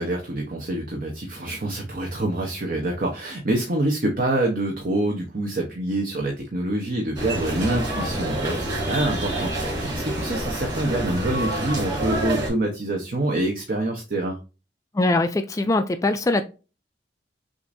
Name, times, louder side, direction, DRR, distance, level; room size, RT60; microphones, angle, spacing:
voice 1, 0.0-14.4, right 1 dB, 50° right, 0.9 m, -26 dB
sound 1, 7.1-12.5, right 1 dB, 20° right, 2.5 m, -27 dB
voice 2, 14.9-16.5, left 2 dB, 20° left, 0.3 m, -22 dB
6.4 x 2.6 x 2.6 m
head